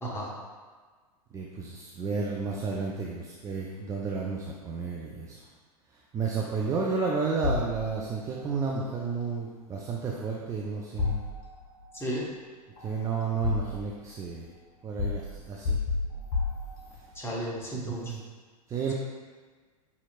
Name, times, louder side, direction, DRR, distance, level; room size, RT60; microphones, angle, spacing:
voice 1, 0.0-0.3 11.9-12.3 17.1-18.1, equal, 10° left, -4 dB, 0.9 m, -33 dB
voice 2, 1.3-5.4 6.1-11.2 12.8-14.5 14.8-15.8 17.8-18.2 18.7-18.9, right 4 dB, 15° right, -3 dB, 0.4 m, -32 dB
sound 1, 7.4-8.3 11.0-11.9 12.8-14.1 15.0-17.2, left 4 dB, 45° left, 0.9 m, -31 dB
5.8 x 2.8 x 2.4 m, 1.4 s
figure-of-eight pair, 95°, 20 cm